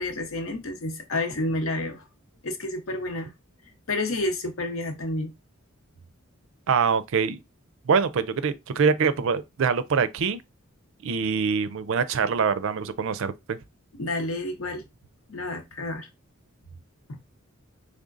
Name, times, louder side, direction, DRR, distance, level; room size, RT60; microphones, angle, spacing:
voice 1, 0.0-2.0 2.4-3.3 3.9-5.3 14.0-14.8 15.3-16.1 17.1-17.2, left 2 dB, 70° left, 0.9 m, -30 dB
voice 2, 6.7-7.4 7.9-10.4 11.0-13.6, right 6 dB, 65° right, 0.4 m, -24 dB
3.7 x 3.5 x 2.5 m
head